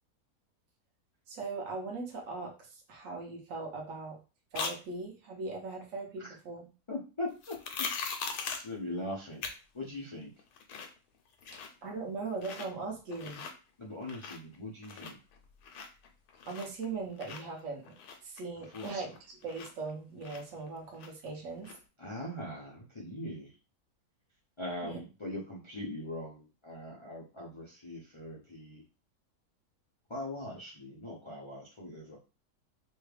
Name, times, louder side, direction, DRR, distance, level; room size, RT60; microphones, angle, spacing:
voice 1, 1.3-4.2 4.5-6.7 11.8-13.4 16.5-17.9 18.2-19.1 19.4-21.7 24.9-25.0, right 3 dB, 60° right, 0 dB, 1.3 m, -39 dB
sound 1, 4.5-4.8 7.4-8.7 9.4-9.5 9.9-10.0 10.4-11.0 11.3-11.9 12.3-12.7 13.1-13.5 13.9-14.6 14.8-16.9 17.2-19.9 20.2-21.3 21.6-21.8, left 5 dB, 80° left, 1.2 m, -40 dB
voice 2, 6.9-7.6 8.5-9.4 9.7-10.3 13.8-15.2 18.7-19.2 22.0-23.6 24.6-28.8 30.1-32.2, left 1 dB, 45° left, -5 dB, 0.3 m, -41 dB
3.3 x 2.2 x 3.3 m, 0.32 s
omnidirectional pair, 1.6 m